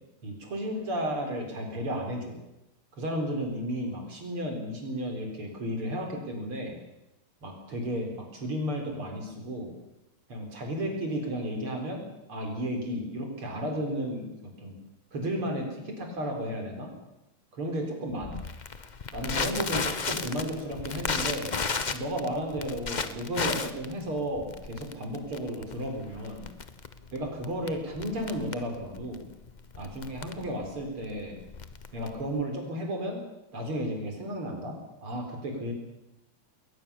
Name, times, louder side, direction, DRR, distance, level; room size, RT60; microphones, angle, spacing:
voice 1, 0.2-2.4 3.0-6.7 7.4-9.7 10.3-14.8 15.1-16.9 17.5-18.4 19.1-21.5 21.9-26.5 27.1-29.2 29.8-31.4 31.9-33.2 33.5-35.7, equal, 75° right, 2 dB, 5.2 m, -33 dB
Crackle, 18.2-32.4, left 5 dB, 85° left, 0.4 m, -34 dB
21.0 x 19.0 x 7.0 m, 0.91 s
omnidirectional pair, 2.4 m